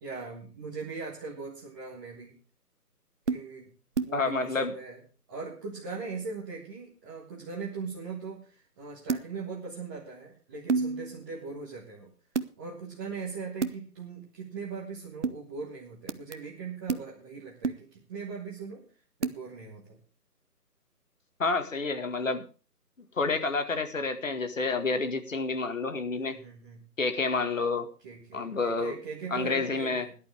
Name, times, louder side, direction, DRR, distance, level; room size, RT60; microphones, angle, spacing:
voice 1, 0.0-2.3 3.3-3.7 4.0-5.0 5.3-12.1 12.6-18.8 19.2-20.0 26.1-26.9 28.0-30.2, right 4 dB, 10° right, -6 dB, 1.7 m, -40 dB
sound 1, 3.3-3.4 4.0-4.1 9.1-9.3 10.7-11.3 12.4-12.5 13.6-13.7 15.2-15.4 16.1-16.3 16.9-17.0 17.6-17.8 19.2-19.4, right 4 dB, 45° right, 0.9 m, -29 dB
voice 2, 4.1-4.7 21.4-22.5 23.2-26.4 27.0-27.9 28.3-28.9 29.3-30.0, left 3 dB, 55° left, 8 dB, 2.0 m, -29 dB
17.5 x 11.5 x 3.5 m, 0.36 s
figure-of-eight pair, 150°, 47 cm